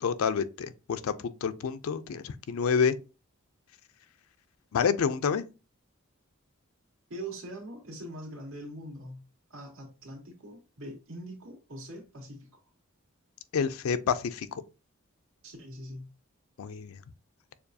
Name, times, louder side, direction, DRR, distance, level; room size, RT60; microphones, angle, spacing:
voice 1, 0.0-3.0 4.7-5.4 13.5-14.6 16.6-17.0, left 6 dB, 75° left, 0.4 m, -28 dB
voice 2, 7.1-9.2 9.5-12.5 15.4-16.1, right 1 dB, 85° right, 1.9 m, -42 dB
6.8 x 2.3 x 2.6 m
head